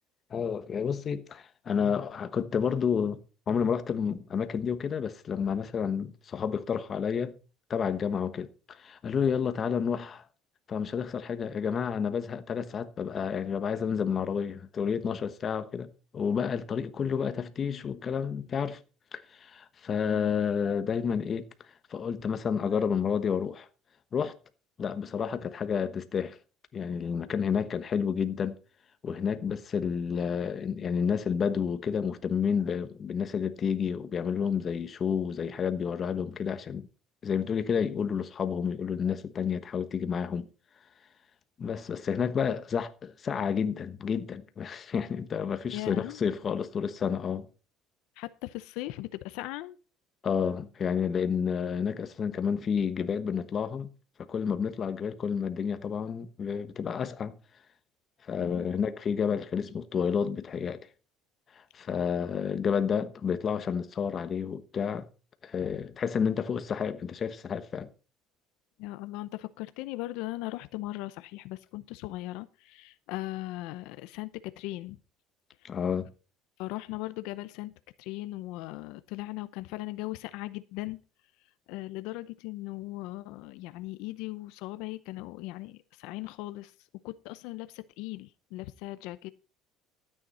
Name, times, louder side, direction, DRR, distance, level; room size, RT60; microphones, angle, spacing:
voice 1, 0.3-3.2 3.5-7.4 7.7-10.2 10.7-18.8 19.1-21.5 21.9-23.7 24.1-24.3 24.8-26.4 26.7-28.6 29.0-36.9 37.2-40.5 41.6-47.5 50.2-53.9 54.2-57.4 58.3-60.8 61.7-65.1 65.4-67.9 75.6-76.1, left 7 dB, 35° left, 1.1 m, -30 dB
voice 2, 20.1-20.4 45.7-46.2 48.2-49.8 58.4-58.7 65.6-65.8 68.8-75.0 76.6-77.7 78.0-81.0 81.7-86.7 87.0-89.3, left 18 dB, 80° left, 0.6 m, -38 dB
13.0 x 9.0 x 4.2 m
cardioid pair, 130°, 0 cm